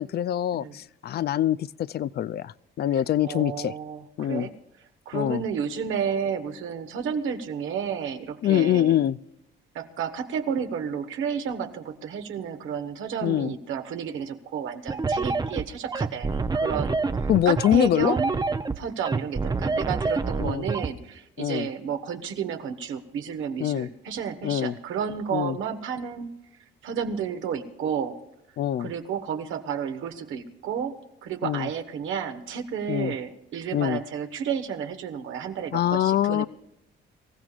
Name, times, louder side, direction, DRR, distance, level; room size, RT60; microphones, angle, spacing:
voice 1, 0.0-3.7 4.2-4.5 5.1-5.4 8.4-9.2 13.2-13.5 17.3-18.1 20.4-20.7 21.4-21.7 23.6-23.9 24.4-24.8 25.3-25.6 28.6-28.9 31.4-31.7 32.9-33.1 33.7-34.0 35.7-36.5, left 11 dB, 55° left, 18 dB, 0.4 m, -24 dB
voice 2, 3.2-4.5 5.0-9.0 9.7-18.3 18.8-26.3 26.8-28.2 28.8-30.9 31.2-36.5, right 7 dB, 80° right, 7 dB, 1.3 m, -31 dB
sound 1, 14.9-20.9, right 4 dB, 20° right, 0.6 m, -27 dB
24.5 x 15.0 x 2.5 m, 0.86 s
cardioid pair, 90°, 20 cm